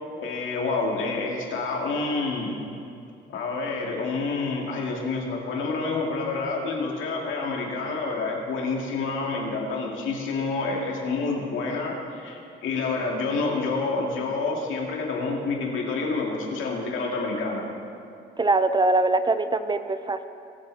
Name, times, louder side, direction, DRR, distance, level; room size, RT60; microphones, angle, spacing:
voice 1, 0.2-2.5 3.3-17.6, left 3 dB, 80° left, -1 dB, 2.2 m, -28 dB
voice 2, 18.4-20.3, right 2 dB, 25° right, 11 dB, 0.5 m, -22 dB
20.0 x 7.0 x 4.1 m, 2.6 s
cardioid pair, 90°, 20 cm